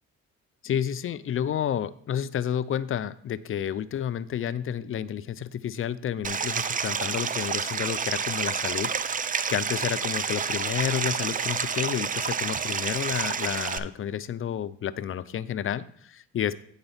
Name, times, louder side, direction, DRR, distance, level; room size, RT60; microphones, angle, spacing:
voice 1, 0.6-9.2 9.5-16.6, left 9 dB, 45° left, 15 dB, 0.5 m, -30 dB
Stream, 6.2-13.8, right 6 dB, 30° right, 0.4 m, -29 dB
9.1 x 3.9 x 5.6 m, 0.67 s
cardioid pair, 90°, 30 cm